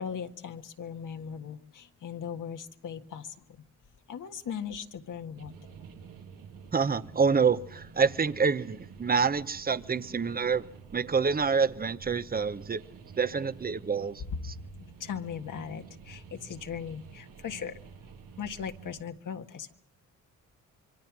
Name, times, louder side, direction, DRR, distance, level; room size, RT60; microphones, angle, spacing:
voice 1, 0.0-3.3 4.1-5.5 15.0-17.7 18.4-19.7, left 7 dB, 65° left, 1.7 m, -38 dB
sound 1, 5.3-19.0, right 6 dB, 75° right, 2.5 m, -49 dB
voice 2, 6.7-10.7 10.9-12.8 13.2-14.2, right 5 dB, 25° right, 1.0 m, -27 dB
26.0 x 23.5 x 6.2 m
cardioid pair, 85°, 34 cm